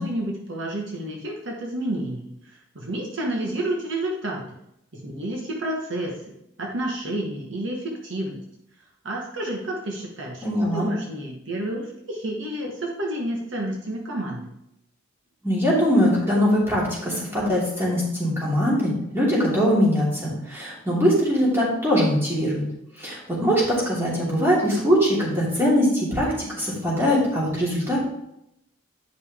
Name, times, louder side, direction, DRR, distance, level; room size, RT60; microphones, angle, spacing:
voice 1, 0.0-4.4 4.9-8.4 9.0-10.4 10.7-14.5, right 1 dB, 65° right, -1 dB, 1.2 m, -30 dB
voice 2, 10.4-10.9 15.4-22.6 23.0-28.0, equal, 10° right, -6 dB, 2.7 m, -22 dB
9.2 x 5.3 x 3.6 m, 0.80 s
head